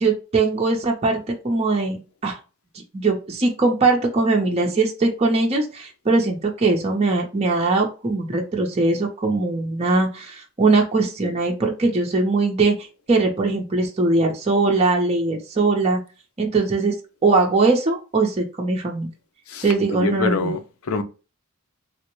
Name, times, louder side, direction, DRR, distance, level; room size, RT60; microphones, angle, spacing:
voice 1, 0.0-2.4 2.9-12.7 13.1-16.0 16.4-16.9 17.2-19.1 19.6-20.5, right 3 dB, 30° right, 0.6 m, -21 dB
voice 2, 19.9-21.0, left 4 dB, 70° left, 0.5 m, -25 dB
3.6 x 2.0 x 2.9 m
head